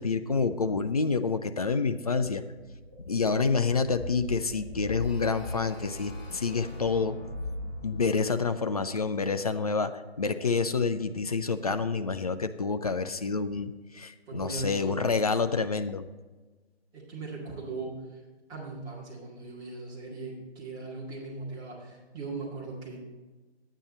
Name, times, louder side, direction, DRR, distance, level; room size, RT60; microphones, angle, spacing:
voice 1, 0.0-2.4 3.1-7.2 7.8-16.1, left 4 dB, 35° left, 10 dB, 0.4 m, -28 dB
sound 1, 2.4-8.0, left 2 dB, 15° left, 3.8 m, -40 dB
sound 2, 5.0-9.7, left 2 dB, 55° left, 3.5 m, -52 dB
voice 2, 14.3-14.9 16.9-18.0 18.5-23.0, right 3 dB, 10° right, -4 dB, 2.0 m, -39 dB
10.0 x 9.2 x 4.1 m, 1.3 s
figure-of-eight pair, 150°, 33 cm